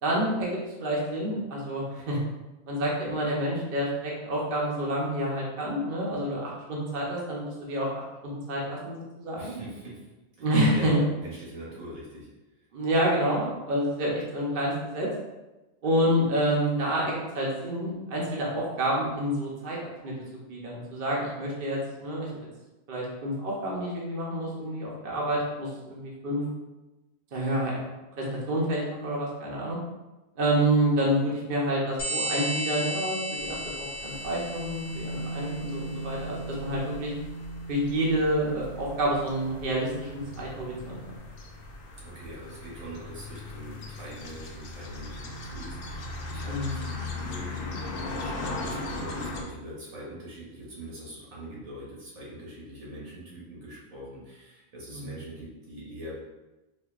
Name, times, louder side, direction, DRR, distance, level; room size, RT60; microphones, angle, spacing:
voice 1, 0.0-2.2 2.7-9.5 10.4-11.0 12.7-15.1 15.8-20.1 20.5-22.3 22.9-26.4 27.3-27.7 28.2-29.8 30.4-37.1 37.7-40.1 40.4-41.0 46.5-46.8 54.9-55.1, right 1 dB, 50° right, -4 dB, 0.8 m, -28 dB
voice 2, 9.4-10.1 10.4-10.5 10.7-12.3 42.0-56.1, right 1 dB, 80° right, -5 dB, 1.5 m, -43 dB
sound 1, 32.0-36.3, equal, 45° left, 0.9 m, -34 dB
sound 2, 33.4-49.4, left 2 dB, 65° left, 0.5 m, -39 dB
Bass guitar, 34.9-41.2, right 2 dB, 80° left, 1.1 m, -40 dB
4.3 x 2.5 x 2.4 m, 1.0 s
omnidirectional pair, 1.4 m